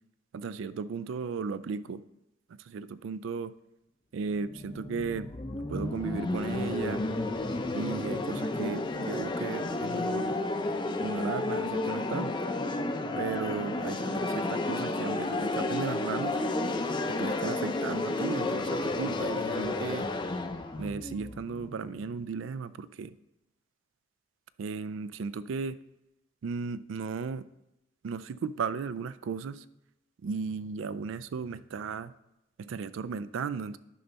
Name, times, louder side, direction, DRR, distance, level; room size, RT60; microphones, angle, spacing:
voice 1, 0.3-2.0 2.5-3.5 4.1-5.3 5.7-7.0 7.7-10.4 11.0-12.3 13.2-16.4 17.1-20.1 20.8-23.1 24.6-25.8 26.4-27.4 28.0-29.6 30.2-32.1 32.6-33.8, right 5 dB, 75° right, 16 dB, 0.3 m, -35 dB
sound 1, 4.3-22.2, left 2 dB, 25° left, 0.5 m, -32 dB
10.0 x 5.4 x 4.0 m, 0.89 s
head